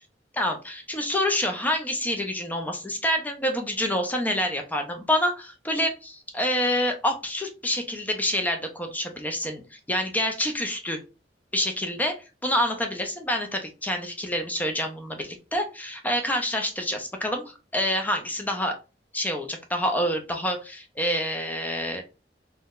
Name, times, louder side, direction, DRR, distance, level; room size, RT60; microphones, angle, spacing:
voice 1, 0.4-11.0 11.5-12.2 12.4-18.8 19.1-22.0, left 1 dB, 10° left, 4 dB, 0.5 m, -27 dB
3.5 x 2.1 x 2.3 m, 0.30 s
head